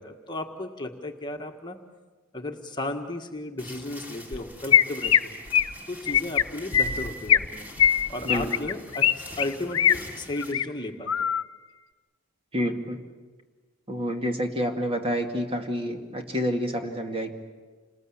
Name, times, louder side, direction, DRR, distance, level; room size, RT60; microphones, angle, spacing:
voice 1, 0.0-1.8 2.3-5.3 5.9-7.7 8.1-11.3, left 2 dB, 20° left, 3 dB, 1.6 m, -34 dB
sound 1, 3.6-10.5, left 1 dB, 10° right, 2.7 m, -45 dB
Chirp tweet, 4.3-4.4 4.7-5.2 5.5-5.7 6.1-6.4 6.7-7.5 7.8-9.1 9.4-9.9 10.4-10.6 11.1-11.4, left 9 dB, 70° left, 1.1 m, -21 dB
voice 2, 8.2-8.6 12.5-13.0 13.9-17.3, equal, 25° right, 4 dB, 2.2 m, -28 dB
28.0 x 20.5 x 8.7 m, 1.3 s
head